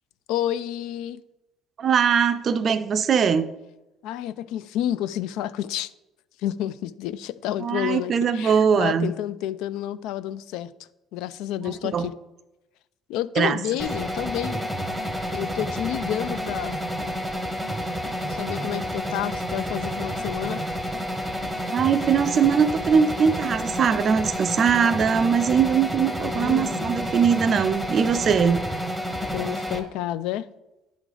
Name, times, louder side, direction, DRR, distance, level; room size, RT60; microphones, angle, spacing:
voice 1, 0.3-1.2 4.0-5.9 6.4-10.7 11.1-12.1 13.1-14.6 15.3-16.8 18.2-20.6 26.2-27.0 29.3-30.5, left 12 dB, 85° left, 17 dB, 0.3 m, -30 dB
voice 2, 1.8-3.5 7.6-9.1 11.6-12.1 13.4-13.6 21.7-28.6, right 6 dB, 40° right, 11 dB, 0.4 m, -21 dB
sound 1, 13.8-29.8, equal, ahead, 0.8 m, -30 dB
10.5 x 3.8 x 4.9 m, 0.99 s
cardioid pair, 145°, 0 cm